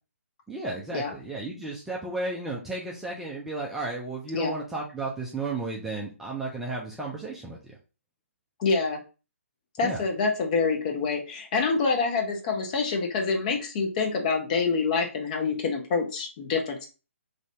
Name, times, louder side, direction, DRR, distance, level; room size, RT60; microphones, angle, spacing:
voice 1, 0.5-7.6 9.8-10.0, right 2 dB, 5° right, -4 dB, 0.4 m, -33 dB
voice 2, 8.6-9.0 9.8-16.9, left 4 dB, 35° left, 2 dB, 0.8 m, -26 dB
2.8 x 2.6 x 3.2 m, 0.32 s
figure-of-eight pair, 140°, 7 cm